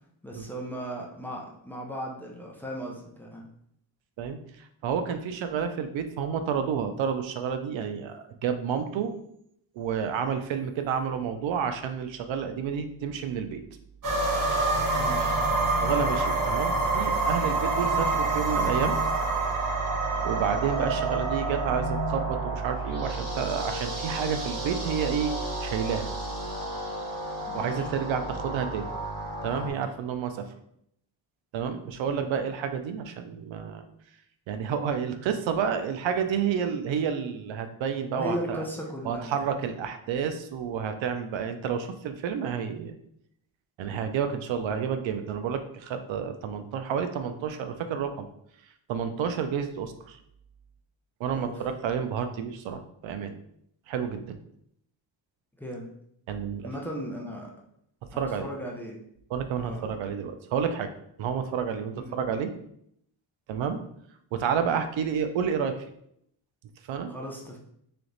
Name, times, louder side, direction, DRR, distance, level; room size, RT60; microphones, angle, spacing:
voice 1, 0.2-3.5 14.9-15.4 27.5-27.9 32.1-32.3 38.1-39.4 51.3-51.5 55.6-55.9 56.6-57.5 58.1-59.0 59.5-60.0 62.0-62.2 67.1-67.6, equal, 5° left, -2 dB, 0.6 m, -37 dB
voice 2, 4.2-9.1 9.8-13.6 15.8-18.9 20.2-25.3 25.6-26.1 27.5-28.9 29.4-30.5 31.5-33.8 34.5-38.6 39.0-42.9 43.8-48.3 48.9-50.2 51.2-53.4 53.9-54.4 56.3-56.7 58.1-58.5 59.3-60.9 61.2-62.5 63.5-63.8 64.3-65.9 66.9-67.1, right 7 dB, 75° right, 8 dB, 0.6 m, -30 dB
sound 1, 14.0-29.7, right 3 dB, 40° right, 1.1 m, -28 dB
3.4 x 2.9 x 3.9 m, 0.71 s
cardioid pair, 125°, 46 cm